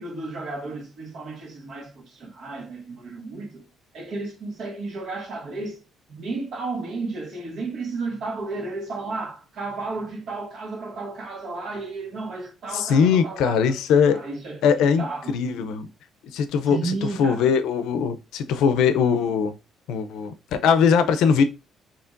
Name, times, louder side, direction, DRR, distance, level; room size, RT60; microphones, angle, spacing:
voice 1, 0.0-3.6 3.9-5.8 6.1-13.8 14.1-15.4 16.7-17.5, right 3 dB, 55° right, 1.5 m, -33 dB
voice 2, 12.7-14.2 14.6-15.9 16.3-16.9 17.2-19.5 19.9-21.4, left 6 dB, 80° left, 0.5 m, -21 dB
7.0 x 2.9 x 2.5 m
cardioid pair, 145°, 0 cm